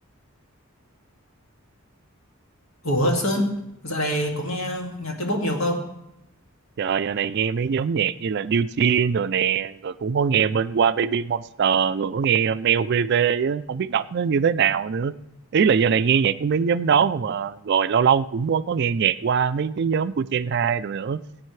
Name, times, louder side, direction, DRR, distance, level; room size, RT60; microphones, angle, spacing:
voice 1, 2.8-3.6 3.8-5.8, equal, 65° left, 1 dB, 2.2 m, -24 dB
voice 2, 6.8-15.1 15.5-21.2, right 7 dB, 50° right, 14 dB, 0.4 m, -22 dB
17.5 x 9.0 x 3.2 m, 0.82 s
head